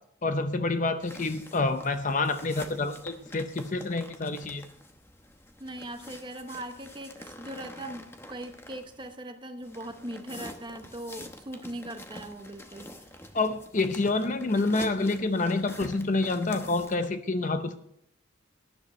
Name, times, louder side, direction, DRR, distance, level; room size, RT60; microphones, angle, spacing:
voice 1, 0.2-4.7 13.3-17.8, left 3 dB, 40° left, 10 dB, 0.7 m, -28 dB
sound 1, 1.0-9.1 9.6-17.1, left 1 dB, 10° left, 0.9 m, -46 dB
voice 2, 5.6-13.1, right 1 dB, 25° right, 7 dB, 0.9 m, -40 dB
18.0 x 10.5 x 3.2 m, 0.69 s
head